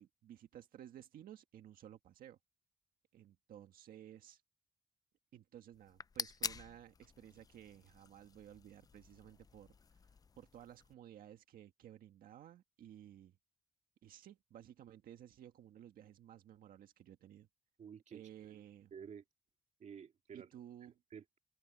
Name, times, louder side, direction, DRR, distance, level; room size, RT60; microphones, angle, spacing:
voice 1, 0.0-2.4 3.1-4.4 5.3-10.0 10.4-13.4 14.0-17.5 18.1-18.9 20.3-21.0, right 11 dB, 85° right, 1.7 m, -56 dB
sound 1, 5.7-10.9, left 5 dB, 25° left, 0.4 m, -48 dB
voice 2, 17.8-18.6 18.9-19.2 19.8-20.5 21.1-21.4, right 7 dB, 55° right, 2.2 m, -52 dB
cardioid pair, 110°, 14 cm